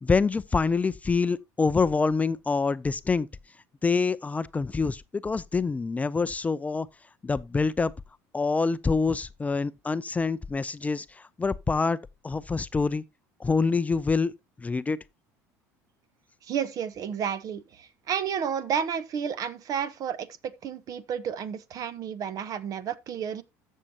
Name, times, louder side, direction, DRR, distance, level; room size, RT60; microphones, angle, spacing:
voice 1, 0.0-3.3 3.8-6.9 7.2-7.9 8.3-12.0 12.2-13.0 13.4-14.3 14.6-15.0, left 4 dB, 20° left, 0.5 m, -26 dB
voice 2, 16.4-23.4, right 8 dB, 50° right, 1.1 m, -31 dB
14.0 x 6.5 x 2.9 m
supercardioid pair, 85°, 8 cm